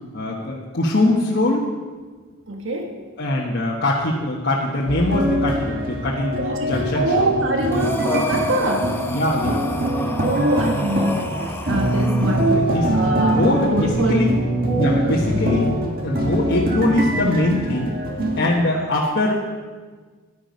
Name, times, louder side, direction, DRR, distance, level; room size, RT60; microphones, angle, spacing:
voice 1, 0.1-1.7 3.2-7.3 7.7-7.8 9.1-10.2 12.1-14.3 14.8-18.0 18.4-19.4, left 1 dB, 55° left, -4 dB, 1.2 m, -22 dB
voice 2, 2.5-2.9 6.4-9.0 10.2-14.2 14.9-15.2, right 1 dB, 70° right, 3 dB, 1.4 m, -24 dB
sound 1, 4.9-18.5, right 1 dB, 45° right, 1.7 m, -23 dB
Breathing, 7.7-12.7, left 3 dB, 10° left, 0.7 m, -30 dB
11.0 x 9.3 x 5.3 m, 1.4 s
head